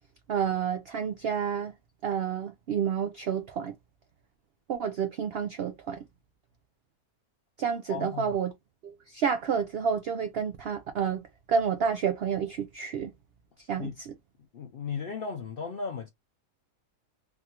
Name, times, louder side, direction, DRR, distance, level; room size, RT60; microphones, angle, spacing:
voice 1, 0.3-1.7 2.0-3.7 4.7-6.0 7.6-8.5 8.8-11.2 11.5-13.1 13.7-14.1, right 7 dB, 80° right, 0.5 m, -29 dB
voice 2, 7.9-8.3 13.8-13.9 14.5-16.1, left 5 dB, 65° left, 0.5 m, -35 dB
3.6 x 2.3 x 2.8 m
omnidirectional pair, 1.6 m